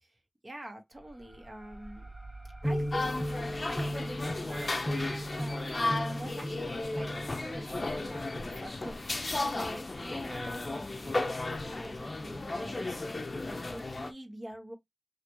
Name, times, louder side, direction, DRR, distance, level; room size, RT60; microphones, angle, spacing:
voice 1, 0.4-2.1 2.6-13.2 13.4-14.8, right 1 dB, 40° right, 1.1 m, -46 dB
sound 1, 0.9-10.1, right 2 dB, 15° right, 0.4 m, -51 dB
sound 2, 2.6-8.2, equal, 15° left, 1.2 m, -36 dB
sound 3, 2.9-14.1, left 2 dB, 50° left, 0.5 m, -35 dB
3.2 x 2.4 x 3.0 m
wide cardioid pair, 70°, 0 cm